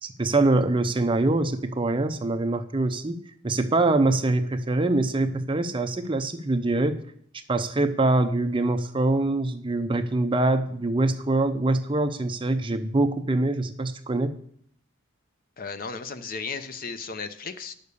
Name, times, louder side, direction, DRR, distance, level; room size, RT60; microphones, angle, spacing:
voice 1, 0.0-7.0 7.5-14.4, right 2 dB, 25° right, 8 dB, 0.6 m, -24 dB
voice 2, 15.6-17.7, left 5 dB, 45° left, 10 dB, 0.7 m, -35 dB
9.5 x 6.7 x 6.9 m, 0.64 s
head